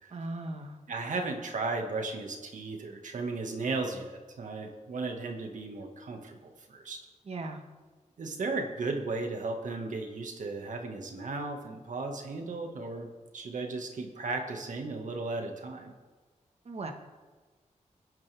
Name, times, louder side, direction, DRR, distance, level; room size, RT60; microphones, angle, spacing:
voice 1, 0.1-0.8 7.3-7.6 16.6-16.9, right 2 dB, 55° right, 4 dB, 1.5 m, -37 dB
voice 2, 0.9-7.0 8.2-13.1 13.3-15.9, right 3 dB, 75° right, 3 dB, 1.9 m, -35 dB
24.0 x 10.5 x 3.6 m, 1.3 s
wide cardioid pair, 180°, 13 cm